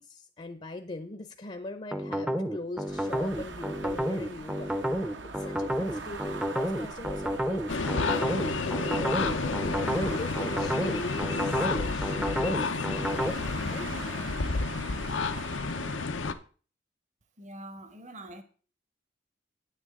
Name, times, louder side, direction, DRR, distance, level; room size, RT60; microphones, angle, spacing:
voice 1, 0.0-4.7 5.2-13.9, left 2 dB, 35° left, 0.6 m, -41 dB
sound 1, 1.9-13.3, equal, 5° right, 0.6 m, -30 dB
sound 2, 2.8-16.1, right 4 dB, 75° right, 0.9 m, -42 dB
sound 3, 7.7-16.3, left 4 dB, 90° left, 0.7 m, -31 dB
voice 2, 17.4-18.4, right 1 dB, 40° right, 1.0 m, -44 dB
9.9 x 9.3 x 3.7 m
head